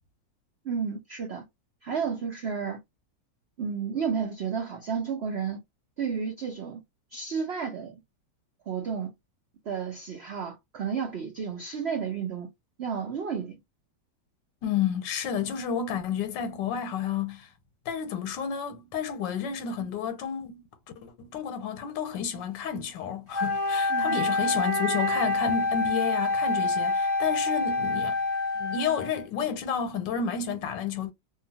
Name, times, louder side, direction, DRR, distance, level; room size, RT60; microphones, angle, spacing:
voice 1, 0.6-1.4 1.8-2.8 3.6-5.6 6.0-6.8 7.1-8.0 8.7-9.1 9.7-12.5 12.8-13.6 23.9-24.3, right 6 dB, 70° right, 0.6 m, -32 dB
voice 2, 14.6-17.5 17.9-20.7 21.0-28.2 28.5-31.1, left 7 dB, 85° left, 1.4 m, -31 dB
Wind instrument woodwind instrument, 23.3-29.2, left 2 dB, 30° right, 1.3 m, -27 dB
2.8 x 2.3 x 2.7 m
omnidirectional pair, 1.9 m